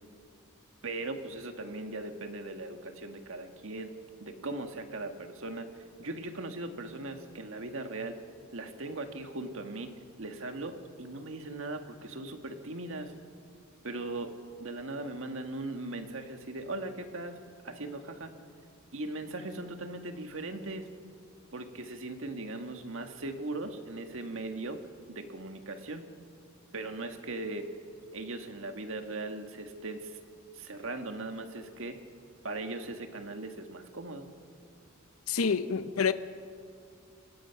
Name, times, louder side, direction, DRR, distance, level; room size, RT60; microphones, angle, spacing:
voice 1, 0.8-3.9 4.2-5.7 6.0-8.2 8.5-9.9 10.2-13.1 13.8-14.3 14.6-17.4 17.6-18.3 18.9-20.9 21.5-24.8 25.1-26.0 26.7-27.7 28.1-30.2 30.5-32.0 32.4-34.3, right 2 dB, 65° right, 1.8 m, -39 dB
voice 2, 35.3-36.1, left 5 dB, 85° left, 0.8 m, -27 dB
26.0 x 21.0 x 5.9 m
head